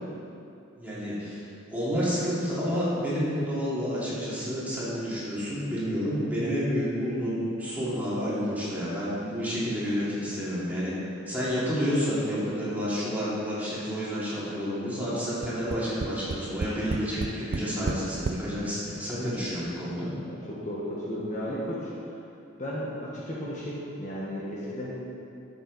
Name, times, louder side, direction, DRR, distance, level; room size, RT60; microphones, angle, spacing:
voice 1, 0.8-10.9 11.3-20.1, equal, 10° right, -10 dB, 2.6 m, -30 dB
Tap, 15.4-18.5 19.3-19.4 19.7-19.8, right 3 dB, 50° right, 0.4 m, -32 dB
voice 2, 20.1-21.9 22.6-24.9, equal, 35° left, -6 dB, 1.3 m, -34 dB
12.5 x 7.1 x 4.1 m, 2.7 s
head